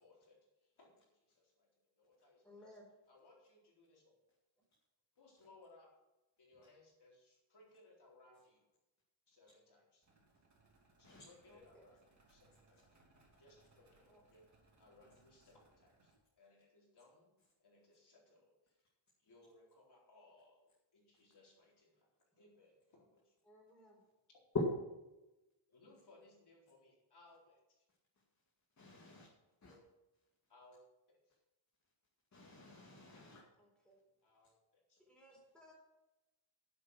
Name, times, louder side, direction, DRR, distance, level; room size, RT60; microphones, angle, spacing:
voice 1, 0.0-1.7 2.0-2.8 3.1-4.0 5.2-5.9 6.4-8.6 9.3-10.1 11.0-12.8 13.4-14.4 14.8-17.3 17.6-18.8 19.2-22.1 22.4-23.3 25.7-27.9 29.6-29.8 30.5-30.8 31.1-31.4 33.1-33.3 34.2-35.0, left 2 dB, 50° left, 4.2 m, -65 dB
voice 2, 2.4-2.8 11.5-11.9 14.1-14.2 23.4-24.0 33.6-34.0 35.0-35.8, left 1 dB, ahead, 4.1 m, -61 dB
sound 1, 10.0-16.2, right 2 dB, 35° right, 3.0 m, -71 dB
voice 3, 28.8-29.3 29.6-29.7 32.3-33.4, left 2 dB, 35° left, 2.3 m, -58 dB
9.7 x 8.6 x 6.2 m
wide cardioid pair, 145°, 49 cm